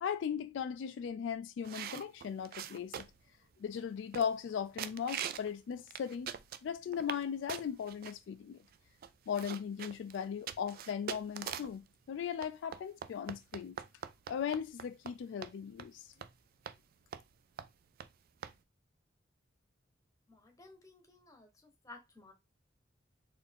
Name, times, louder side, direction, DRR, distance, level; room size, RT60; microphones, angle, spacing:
voice 1, 0.0-3.1 3.6-6.3 6.6-8.6 9.3-13.8 14.3-16.1, left 7 dB, 75° left, 0.3 m, -38 dB
sound 1, 1.6-3.3 3.8-3.9 4.1-4.5 4.8-5.5 5.9-7.2 7.5-8.1 8.7-8.8 9.0-11.8 12.4-15.1 15.4-15.5 15.8-15.9 16.2-16.3 16.7-16.8 17.1-17.3 17.6-17.7 18.0-18.1 18.4-18.5, right 8 dB, 55° right, 0.3 m, -43 dB
voice 2, 20.3-22.3, left 3 dB, 20° left, 0.9 m, -56 dB
4.3 x 2.5 x 3.4 m
head